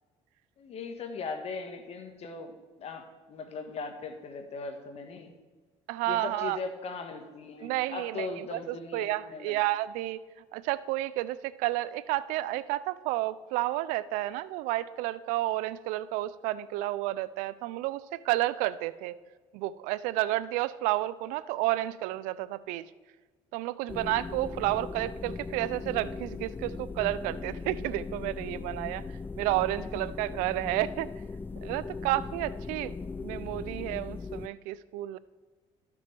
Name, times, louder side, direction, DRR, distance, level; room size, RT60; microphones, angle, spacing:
voice 1, 0.6-5.3 6.1-9.6 29.8-29.9, left 4 dB, 55° left, 6 dB, 1.4 m, -39 dB
voice 2, 5.9-6.6 7.6-10.2 10.5-19.2 19.5-22.9 23.5-29.0 29.4-31.1 31.6-35.2, right 16 dB, 90° right, 17 dB, 0.4 m, -31 dB
sound 1, 23.9-34.5, left 4 dB, 15° left, 0.3 m, -39 dB
12.5 x 6.1 x 4.5 m, 1.4 s
cardioid pair, 95°, 13 cm